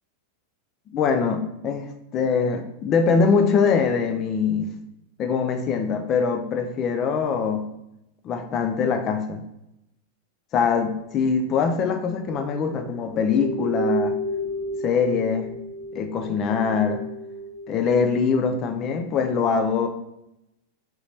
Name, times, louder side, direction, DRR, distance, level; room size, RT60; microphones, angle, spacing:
voice 1, 0.9-4.8 5.2-7.7 8.2-9.4 10.5-14.2 14.8-15.5 15.9-17.0 17.7-19.9, left 5 dB, 30° left, 6 dB, 0.5 m, -23 dB
sound 1, 12.2-17.8, equal, 10° right, 1.3 m, -31 dB
3.7 x 3.1 x 3.2 m, 0.85 s
figure-of-eight pair, 90°, 0 cm